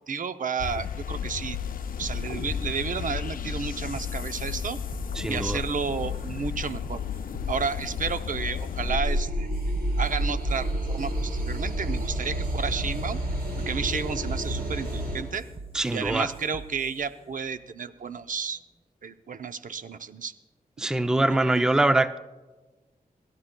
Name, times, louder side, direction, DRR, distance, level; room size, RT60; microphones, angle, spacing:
voice 1, 0.1-1.6 2.0-4.8 5.3-7.0 7.5-9.5 10.0-13.2 13.7-15.5 15.9-18.6 19.0-20.3, right 5 dB, 60° right, 0.6 m, -32 dB
sound 1, 0.6-9.0, left 8 dB, 70° left, 0.4 m, -33 dB
sound 2, 1.5-18.6, right 4 dB, 40° right, 0.9 m, -45 dB
voice 2, 5.2-5.6 15.7-16.3 20.8-22.2, right 2 dB, 5° right, 0.4 m, -23 dB
sound 3, 8.8-15.2, right 1 dB, 80° right, 3.6 m, -29 dB
27.0 x 12.5 x 2.2 m
wide cardioid pair, 95°, 15 cm